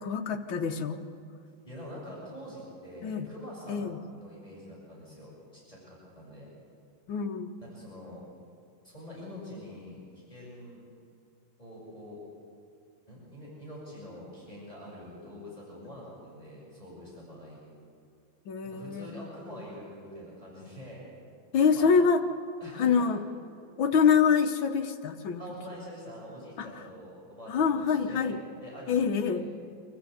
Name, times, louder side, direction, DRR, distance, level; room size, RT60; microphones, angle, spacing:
voice 1, 0.0-1.0 3.0-3.3 3.7-4.0 7.1-7.5 18.5-19.2 21.5-22.2 22.7-23.2 23.8-25.4 26.6-26.7 27.5-28.4 28.9-29.5, left 6 dB, 90° left, 4 dB, 1.9 m, -25 dB
voice 2, 1.6-3.9 4.2-6.5 7.6-8.2 8.8-10.0 10.3-10.8 11.6-12.2 13.1-17.6 18.6-21.0 21.7-21.9 22.6-23.1 25.4-29.5, equal, 20° left, -7 dB, 6.6 m, -45 dB
25.0 x 14.5 x 8.1 m, 2.5 s
omnidirectional pair, 2.1 m